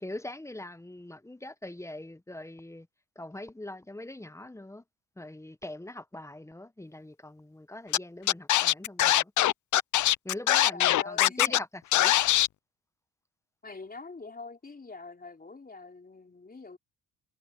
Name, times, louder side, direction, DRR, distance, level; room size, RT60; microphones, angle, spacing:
voice 1, 0.0-2.9 3.2-4.8 5.2-9.3 10.2-11.7 11.9-12.1, left 1 dB, 5° left, 0.8 m, -42 dB
Scratching (performance technique), 7.9-8.0 8.3-11.6 11.9-12.5, left 14 dB, 50° left, 0.5 m, -22 dB
voice 2, 10.7-11.6 13.6-16.8, left 3 dB, 25° left, 4.2 m, -44 dB
cardioid pair, 90°, 38 cm